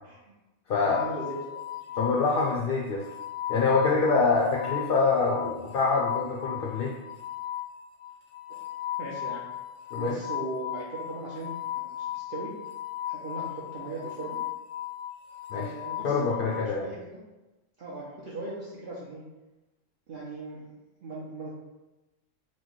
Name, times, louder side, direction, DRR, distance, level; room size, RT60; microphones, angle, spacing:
voice 1, 0.0-0.3 0.7-2.0 9.0-9.5 10.0-12.5 13.1-14.4 15.5-16.2 16.5-17.2 17.8-19.2 20.1-20.7 21.0-21.5, right 2 dB, 55° right, -6 dB, 0.8 m, -39 dB
voice 2, 0.7-1.0 2.0-3.0 3.5-6.9 9.9-10.1 15.5-15.7 16.0-16.9, left 4 dB, 60° left, -2 dB, 0.6 m, -25 dB
sound 1, 0.9-16.6, left 13 dB, 90° left, 0.9 m, -37 dB
6.0 x 2.1 x 3.0 m, 1.0 s
omnidirectional pair, 1.2 m